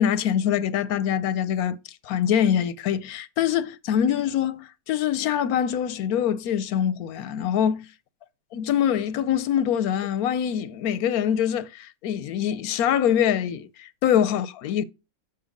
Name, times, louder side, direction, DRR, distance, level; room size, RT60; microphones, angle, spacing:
voice 1, 0.0-1.8 2.0-7.9 8.5-14.8, left 9 dB, 90° left, 1.1 m, -24 dB
7.1 x 5.8 x 5.1 m
omnidirectional pair, 1.5 m